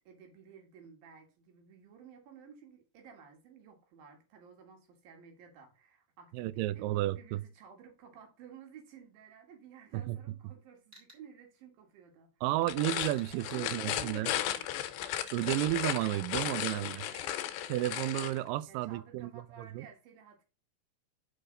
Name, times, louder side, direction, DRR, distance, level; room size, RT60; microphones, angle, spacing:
voice 1, 0.1-6.9 7.2-12.4 13.3-14.8 16.5-17.3 18.6-20.4, right 7 dB, 70° right, 3.2 m, -54 dB
voice 2, 6.3-7.4 10.1-10.2 12.4-14.3 15.3-17.0 17.7-19.3 19.7-19.9, right 16 dB, 90° right, 1.9 m, -32 dB
sound 1, 10.9-11.2 12.9-13.6 15.1-15.5, right 1 dB, 10° right, 2.9 m, -56 dB
sound 2, 12.6-18.4, left 12 dB, 80° left, 2.6 m, -35 dB
6.9 x 5.7 x 3.8 m
omnidirectional pair, 4.5 m